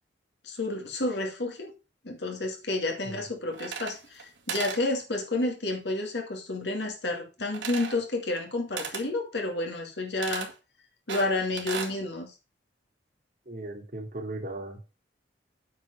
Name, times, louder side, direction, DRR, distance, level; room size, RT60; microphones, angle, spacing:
voice 1, 0.4-1.7 2.0-10.5 11.1-12.3, left 2 dB, 70° left, 2.5 m, -30 dB
sound 1, 3.5-4.2 4.5-4.8 7.5-8.0 8.8-9.1 10.2-10.5 11.1-12.0, right 6 dB, 85° right, 2.0 m, -36 dB
voice 2, 13.5-15.0, right 2 dB, 45° right, 3.6 m, -38 dB
9.1 x 4.9 x 6.6 m
head